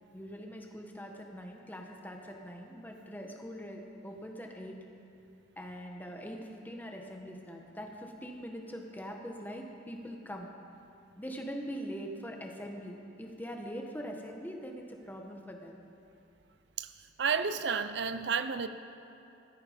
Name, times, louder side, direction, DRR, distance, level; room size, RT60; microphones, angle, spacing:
voice 1, 0.1-4.8 5.6-10.5 11.2-15.8, equal, 10° left, 2 dB, 1.3 m, -42 dB
voice 2, 17.2-18.7, right 6 dB, 65° right, 11 dB, 0.5 m, -31 dB
16.0 x 13.5 x 5.2 m, 2.8 s
head